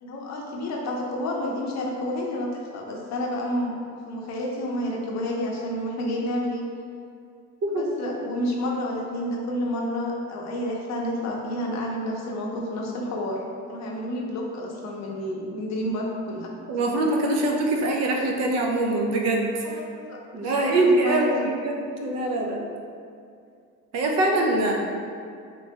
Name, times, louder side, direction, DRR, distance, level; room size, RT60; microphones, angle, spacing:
voice 1, 0.0-3.8 4.1-6.6 7.7-13.4 13.7-16.5 19.6-21.5 24.5-24.7, left 1 dB, 65° left, -1 dB, 0.6 m, -30 dB
voice 2, 7.6-8.1 16.7-19.6 20.3-22.7 23.9-24.9, right 2 dB, 60° right, 0 dB, 0.4 m, -23 dB
2.9 x 2.2 x 2.7 m, 2.4 s
cardioid pair, 90°, 30 cm